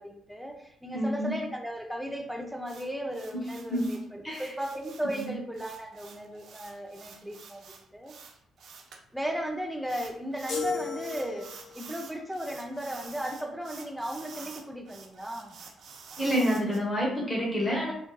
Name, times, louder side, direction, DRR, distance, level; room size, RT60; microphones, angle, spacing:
voice 1, 0.0-8.1 9.1-15.6, equal, ahead, 2 dB, 0.6 m, -36 dB
voice 2, 0.9-1.3 3.3-4.0 4.2-4.5 5.0-5.4 16.2-17.9, equal, 25° left, -2 dB, 0.8 m, -29 dB
sound 1, 2.7-9.0 9.9-10.7 11.0-16.8, right 5 dB, 60° right, 0.5 m, -48 dB
sound 2, 10.5-11.8, left 6 dB, 70° left, 1.1 m, -35 dB
3.5 x 2.6 x 2.3 m, 0.69 s
cardioid pair, 90°, 0 cm